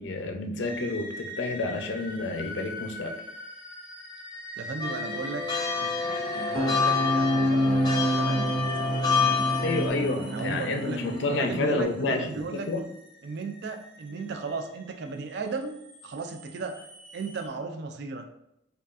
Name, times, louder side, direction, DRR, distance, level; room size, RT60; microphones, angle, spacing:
voice 1, 0.0-3.2 9.6-12.8, left 2 dB, 75° left, 5 dB, 0.5 m, -29 dB
sound 1, 0.6-17.5, left 1 dB, 30° right, 0.7 m, -43 dB
voice 2, 4.6-5.4 5.8-9.8 10.3-11.0 11.3-12.7 13.2-16.9 17.1-18.3, right 4 dB, 60° right, 6 dB, 0.4 m, -36 dB
sound 2, 4.8-9.9, left 5 dB, 25° left, 0.6 m, -28 dB
sound 3, 6.0-11.8, equal, 90° right, 0.9 m, -28 dB
5.0 x 2.3 x 2.5 m, 0.82 s
head